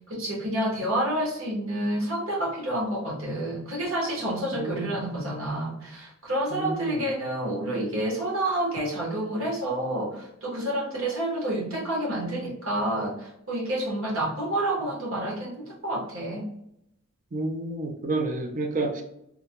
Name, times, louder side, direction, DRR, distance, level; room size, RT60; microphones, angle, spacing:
voice 1, 0.1-16.5, right 1 dB, 80° right, -3 dB, 1.2 m, -29 dB
voice 2, 4.5-5.0 6.5-7.0 17.3-19.0, right 2 dB, 40° right, 3 dB, 0.5 m, -30 dB
3.5 x 2.2 x 2.9 m, 0.78 s
head